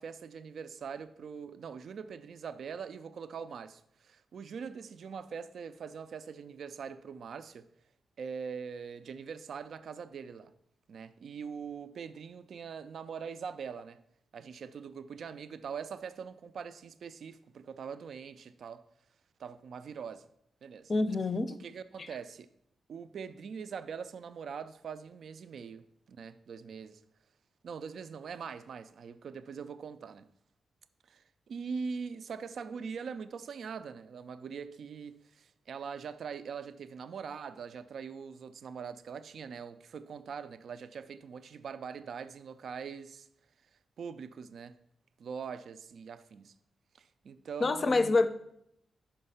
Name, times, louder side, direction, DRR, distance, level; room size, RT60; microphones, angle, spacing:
voice 1, 0.0-7.7 8.2-10.5 10.9-14.0 14.3-18.8 19.4-20.3 20.6-20.9 21.6-22.5 22.9-27.0 27.6-30.3 31.1-43.3 44.0-44.8 45.2-46.5 46.9-48.3, right 6 dB, 65° right, 0.4 m, -42 dB
voice 2, 20.9-21.5 22.0-22.1 47.6-48.3, left 3 dB, 40° left, 0.5 m, -26 dB
5.6 x 5.2 x 5.5 m
cardioid pair, 110°, 0 cm